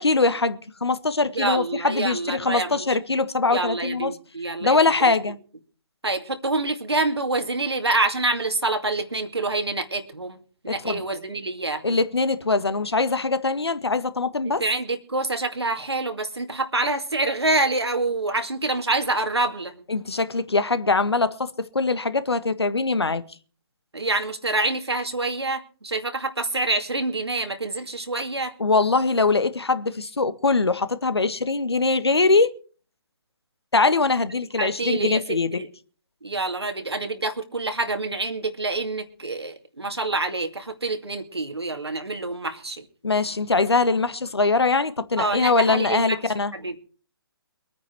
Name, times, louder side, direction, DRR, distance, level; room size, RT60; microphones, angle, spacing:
voice 1, 0.0-4.1 4.6-5.4 10.8-11.0 11.8-14.6 19.9-23.2 28.6-32.5 33.7-35.6 43.0-46.5, left 3 dB, 80° left, 1.5 m, -22 dB
voice 2, 1.3-2.9 3.5-5.1 6.0-10.4 10.6-12.0 14.4-19.7 23.9-28.5 34.6-35.7 36.2-42.9 45.2-46.2 46.5-46.8, right 2 dB, 85° right, 2.4 m, -26 dB
23.5 x 9.3 x 4.6 m
figure-of-eight pair, 135°, 13 cm